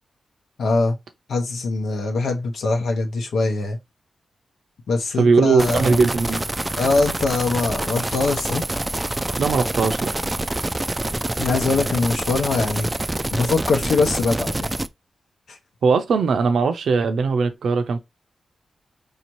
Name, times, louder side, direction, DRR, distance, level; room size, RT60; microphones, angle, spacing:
voice 1, 0.6-0.9 1.3-3.8 4.9-6.0 6.8-8.6 11.4-12.9 13.3-14.7, left 3 dB, 90° left, 0.9 m, -22 dB
voice 2, 5.2-6.4 9.4-10.1 15.8-18.0, right 4 dB, 80° right, 0.6 m, -19 dB
sound 1, 5.6-14.9, right 1 dB, 15° right, 0.3 m, -26 dB
4.9 x 2.8 x 3.0 m
wide cardioid pair, 105°, 0 cm